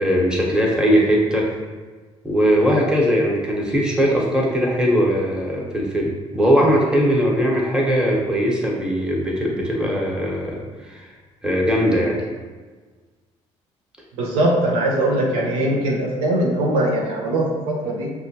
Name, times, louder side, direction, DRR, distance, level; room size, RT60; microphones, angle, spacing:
voice 1, 0.0-1.5 2.2-11.1 11.4-12.2, equal, 5° right, -3 dB, 1.1 m, -20 dB
voice 2, 14.2-18.1, right 1 dB, 80° right, -2 dB, 0.7 m, -21 dB
6.0 x 2.3 x 2.8 m, 1.4 s
hypercardioid pair, 50°, 16 cm